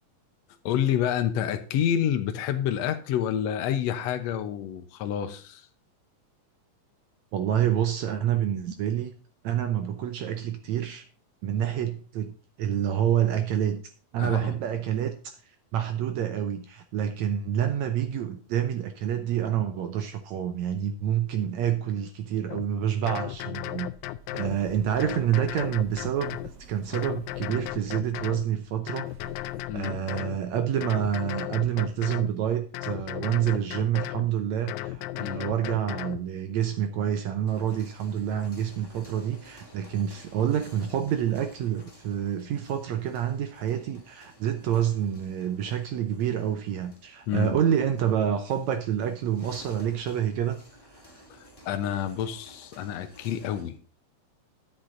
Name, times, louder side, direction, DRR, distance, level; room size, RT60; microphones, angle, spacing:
voice 1, 0.6-5.7 14.2-14.6 29.7-30.0 35.2-35.5 47.3-47.6 51.3-53.8, left 9 dB, 65° left, 7 dB, 1.8 m, -28 dB
voice 2, 7.3-9.1 9.4-11.1 11.4-13.8 14.1-23.9 24.3-29.1 29.4-50.6 50.9-51.2, right 10 dB, 75° right, 8 dB, 1.7 m, -28 dB
sound 1, 22.5-22.7 23.1-24.6 25.0-26.5 26.9-28.5 28.9-30.4 30.8-32.3 32.7-34.3 34.7-36.2, left 16 dB, 85° left, 2.3 m, -35 dB
sound 2, 23.6-32.4 32.7-33.3 33.7-33.8 33.9-35.1, right 2 dB, 50° right, 2.8 m, -52 dB
sound 3, 37.3-53.8, equal, 15° left, 0.9 m, -54 dB
10.5 x 8.2 x 3.9 m, 0.38 s
omnidirectional pair, 4.0 m